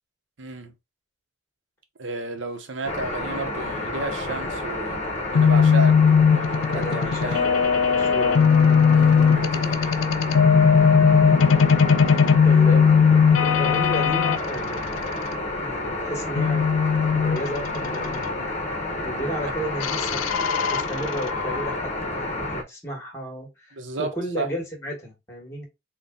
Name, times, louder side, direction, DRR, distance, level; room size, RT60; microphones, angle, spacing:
voice 1, 0.4-0.7 2.0-7.5 8.9-10.0 19.4-19.5 23.7-24.5, right 3 dB, 70° right, 0.8 m, -33 dB
sound 1, 2.8-22.6, left 2 dB, 35° left, 0.8 m, -30 dB
sound 2, 5.4-14.4 16.4-18.3 19.8-21.7, left 6 dB, 90° left, 0.4 m, -19 dB
voice 2, 6.7-8.9 12.4-15.1 15.6-16.7 17.1-18.5 19.0-20.3 20.7-25.7, equal, 15° left, 1.2 m, -33 dB
4.0 x 2.2 x 3.5 m
head